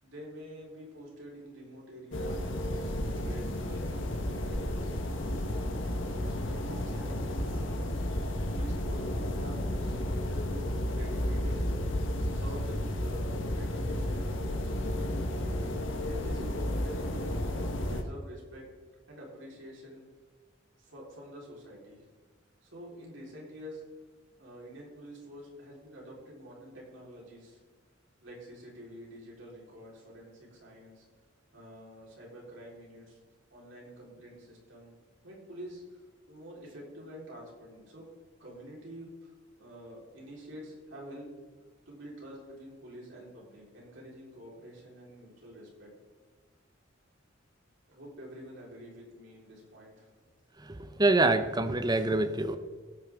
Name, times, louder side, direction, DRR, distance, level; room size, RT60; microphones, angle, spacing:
voice 1, 0.0-8.0 8.5-10.6 10.9-11.9 12.3-14.7 16.0-18.7 19.1-20.0 20.8-22.1 22.6-23.8 24.4-27.6 28.2-31.1 31.5-33.2 33.5-34.9 35.2-38.1 38.4-39.3 39.6-41.3 41.9-45.9 47.9-50.1, equal, 70° right, -4 dB, 4.4 m, -47 dB
sound 1, 2.1-18.0, left 1 dB, 75° left, 1.4 m, -32 dB
voice 2, 50.7-52.6, right 2 dB, 20° right, 9 dB, 0.8 m, -26 dB
16.5 x 9.3 x 3.7 m, 1.4 s
head